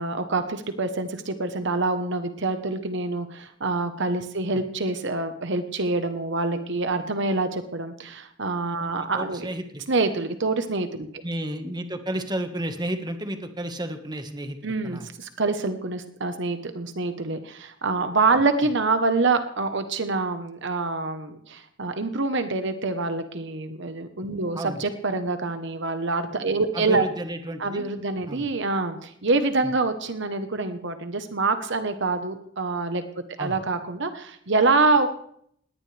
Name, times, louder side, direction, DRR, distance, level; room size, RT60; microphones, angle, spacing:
voice 1, 0.0-9.5 9.9-11.1 14.6-27.1 27.6-33.0 33.4-35.1, right 3 dB, 60° right, 8 dB, 1.2 m, -26 dB
voice 2, 9.1-9.8 11.2-15.1 24.5-24.8 26.7-27.9 28.3-28.5 33.4-33.6, right 1 dB, 20° right, 6 dB, 1.5 m, -32 dB
19.5 x 18.0 x 3.4 m, 0.67 s
head